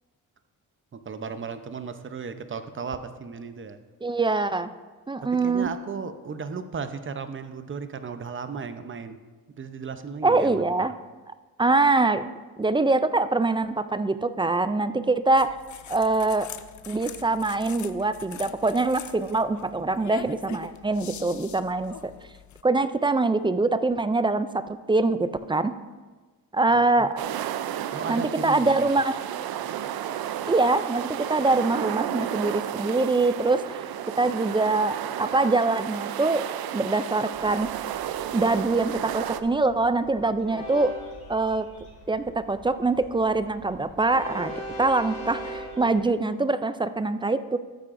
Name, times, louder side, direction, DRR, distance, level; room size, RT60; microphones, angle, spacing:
voice 1, 0.9-3.8 5.3-9.2 9.5-10.6 26.7-26.9 27.9-28.9, right 5 dB, 35° right, 9 dB, 0.7 m, -35 dB
voice 2, 4.0-4.7 5.1-5.7 10.2-10.9 11.6-12.3 12.6-15.6 15.9-16.5 16.9-22.1 22.6-25.7 26.5-27.1 28.1-29.2 30.5-33.8 34.2-36.4 36.7-37.7 38.3-40.9 41.3-41.7 42.1-44.5 44.8-47.6, right 3 dB, 15° right, 12 dB, 0.3 m, -24 dB
sound 1, 15.4-22.6, left 10 dB, 50° left, 0.5 m, -43 dB
sound 2, 27.2-39.4, right 11 dB, 75° right, 0.5 m, -32 dB
Train, 37.3-45.9, equal, 20° left, 3.2 m, -41 dB
13.0 x 8.7 x 2.6 m, 1.3 s
cardioid pair, 85°, 37 cm